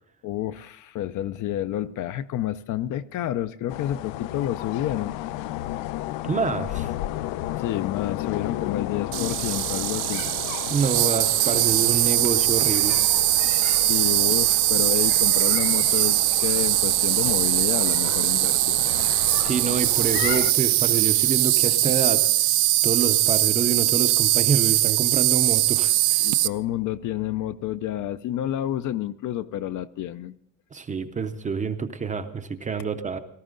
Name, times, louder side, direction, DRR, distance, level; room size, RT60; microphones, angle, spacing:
voice 1, 0.2-5.1 7.6-10.2 13.9-18.8 26.2-30.3, left 12 dB, 45° left, 12 dB, 0.5 m, -29 dB
sound 1, 3.7-20.5, left 14 dB, 90° left, 0.7 m, -33 dB
voice 2, 6.2-6.9 10.7-13.0 19.4-22.3 22.8-26.3 30.7-33.2, right 5 dB, 20° right, 9 dB, 0.5 m, -27 dB
Insect, 9.1-26.5, right 18 dB, 65° right, 0.6 m, -21 dB
17.5 x 14.0 x 3.8 m, 0.73 s
cardioid pair, 175°, 43 cm